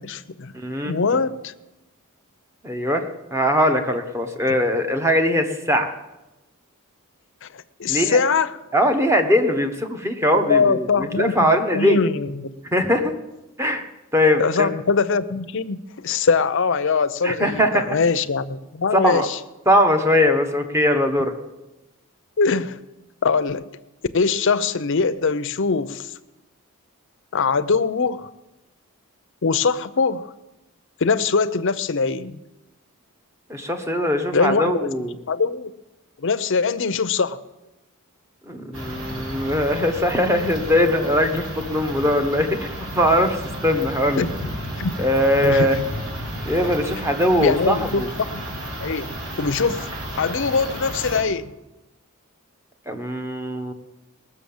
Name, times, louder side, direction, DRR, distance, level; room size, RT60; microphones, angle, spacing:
voice 1, 0.0-0.5 0.8-1.5 7.4-8.6 10.3-12.5 14.4-19.4 22.4-22.8 23.2-23.7 24.1-26.1 27.3-28.3 29.4-30.3 31.0-32.4 34.3-34.9 35.3-35.7 36.2-37.4 44.1-44.3 44.8-45.0 45.4-45.9 47.4-48.5 48.8-49.1 49.4-49.9 50.2-51.5, left 4 dB, 60° left, 12 dB, 0.6 m, -22 dB
voice 2, 0.5-1.2 2.6-3.0 3.3-5.9 7.9-8.2 8.7-12.0 12.7-13.1 13.6-13.8 14.1-14.7 17.2-17.9 19.0-19.3 19.7-21.3 33.5-35.1 38.5-42.7 42.9-43.4 43.6-44.2 45.0-45.8 46.5-48.1 52.9-53.7, equal, 10° right, 5 dB, 1.2 m, -20 dB
sound 1, 38.7-51.2, equal, 65° right, 3.6 m, -32 dB
19.5 x 6.8 x 7.2 m, 1.0 s
head